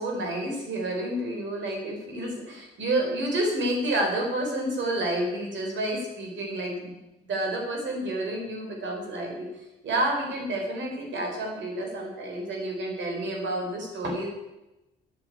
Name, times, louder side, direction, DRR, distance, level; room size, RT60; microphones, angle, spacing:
voice 1, 0.0-6.9 7.2-14.3, right 1 dB, 70° right, 0 dB, 4.9 m, -29 dB
9.6 x 9.2 x 8.4 m, 0.99 s
cardioid pair, 90°, 20 cm